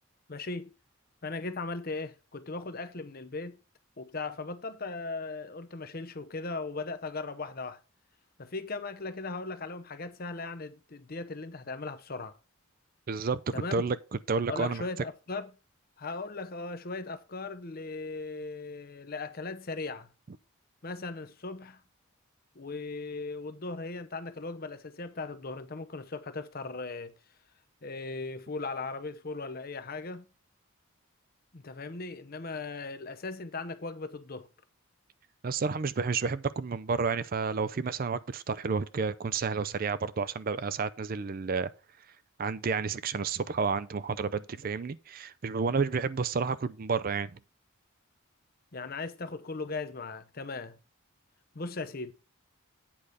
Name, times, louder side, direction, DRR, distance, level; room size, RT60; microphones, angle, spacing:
voice 1, 0.3-0.7 1.2-3.6 4.0-7.8 8.4-12.4 13.5-13.8 14.5-15.5 16.0-20.1 20.8-21.8 22.5-27.1 27.8-30.3 31.5-34.5 48.7-50.8 51.5-52.1, left 3 dB, 45° left, 0.8 m, -38 dB
voice 2, 13.1-13.4 13.7-14.0 14.3-14.8 35.4-41.7 42.4-47.3, right 5 dB, 40° right, 0.4 m, -30 dB
8.6 x 4.9 x 5.4 m
head